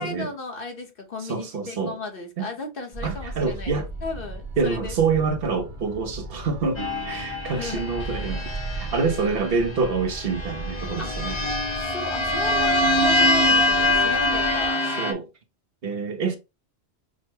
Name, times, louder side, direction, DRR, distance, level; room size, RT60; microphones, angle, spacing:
voice 1, 0.0-4.9 7.5-7.8 11.0-11.2 11.7-14.8, left 3 dB, 55° left, 1.3 m, -35 dB
voice 2, 1.3-1.9 2.4-2.5 3.0-3.9 4.6-11.6 15.0-15.2 15.8-16.4, right 4 dB, 65° right, 1.0 m, -26 dB
sound 1, 2.9-14.7, right 2 dB, 45° right, 1.3 m, -36 dB
sound 2, 6.8-9.5 10.3-15.1, left 1 dB, 30° left, 1.0 m, -24 dB
6.2 x 2.2 x 2.8 m
omnidirectional pair, 1.1 m